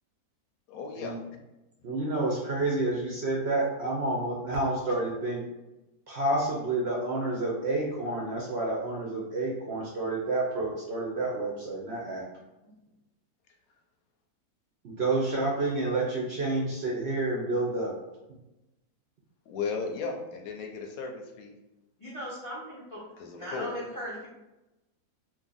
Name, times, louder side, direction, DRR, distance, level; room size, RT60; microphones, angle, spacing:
voice 1, 0.7-1.2 19.5-21.5 23.2-23.7, left 5 dB, 70° left, 2 dB, 0.9 m, -35 dB
voice 2, 1.8-5.4 6.1-12.3 14.8-17.9, right 2 dB, 60° right, -3 dB, 0.7 m, -29 dB
voice 3, 22.0-23.0 23.4-24.3, equal, 45° left, -6 dB, 0.4 m, -38 dB
2.6 x 2.6 x 3.8 m, 0.99 s
omnidirectional pair, 1.6 m